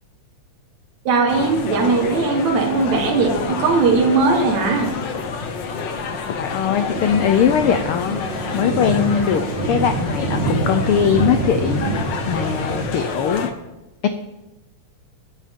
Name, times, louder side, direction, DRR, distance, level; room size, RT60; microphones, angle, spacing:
voice 1, 1.1-4.9, right 4 dB, 75° right, 0 dB, 2.8 m, -18 dB
sound 1, 1.3-13.5, left 5 dB, 60° left, 1.2 m, -28 dB
voice 2, 6.3-13.5 14.0-14.1, left 8 dB, 85° left, 8 dB, 1.2 m, -21 dB
sound 2, 6.9-12.9, right 3 dB, 50° right, 2.3 m, -26 dB
21.0 x 9.1 x 3.7 m, 1.0 s
omnidirectional pair, 3.3 m